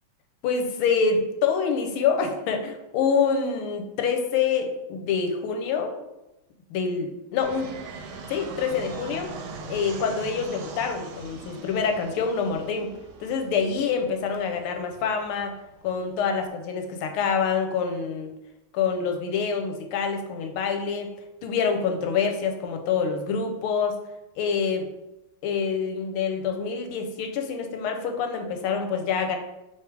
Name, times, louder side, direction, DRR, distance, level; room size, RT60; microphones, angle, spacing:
voice 1, 0.4-6.0 6.7-7.7 8.3-9.3 9.7-12.9 13.2-15.6 15.8-18.3 18.7-21.1 21.4-24.0 24.4-24.9 25.4-29.4, left 6 dB, 85° left, 4 dB, 1.5 m, -26 dB
Fixed-wing aircraft airplane, 7.4-16.4, right 4 dB, 75° right, 1.3 m, -41 dB
3.4 x 3.3 x 4.5 m, 0.95 s
omnidirectional pair, 2.3 m